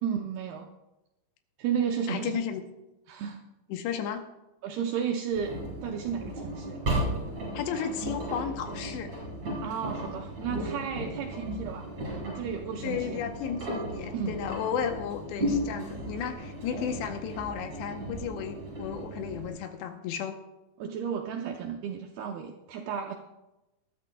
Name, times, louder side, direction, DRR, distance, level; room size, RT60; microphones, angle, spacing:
voice 1, 0.0-0.7 1.6-2.4 3.1-3.4 4.6-5.5 5.8-6.8 9.6-11.9 12.2-13.2 14.1-14.4 20.8-23.1, right 7 dB, 80° right, 3 dB, 2.3 m, -33 dB
voice 2, 2.1-2.6 3.7-4.3 7.5-9.1 12.8-20.4, left 8 dB, 80° left, 6 dB, 2.8 m, -33 dB
Engine, 5.3-19.5, right 1 dB, 35° right, 6.2 m, -35 dB
20.5 x 12.5 x 2.2 m, 0.96 s
omnidirectional pair, 5.3 m